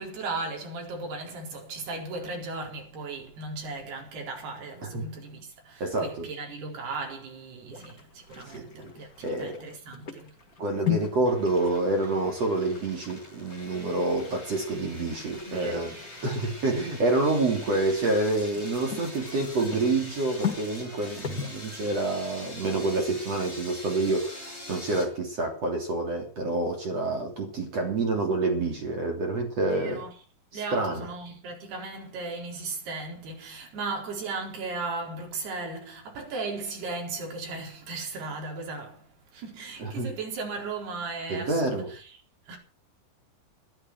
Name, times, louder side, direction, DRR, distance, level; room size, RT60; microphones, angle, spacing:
voice 1, 0.0-10.4 15.5-16.0 29.6-30.1 30.5-42.1 42.5-42.6, right 3 dB, 75° right, 6.3 m, -36 dB
voice 2, 5.8-6.3 8.3-8.7 9.2-9.6 10.6-16.0 16.2-30.1 30.5-31.1 39.8-40.1 41.3-41.9, right 2 dB, 40° right, 3.8 m, -28 dB
sound 1, 7.7-23.1, left 10 dB, 30° left, 1.7 m, -39 dB
sound 2, 11.3-25.1, left 1 dB, 15° left, 7.2 m, -44 dB
13.5 x 13.0 x 6.1 m
omnidirectional pair, 4.7 m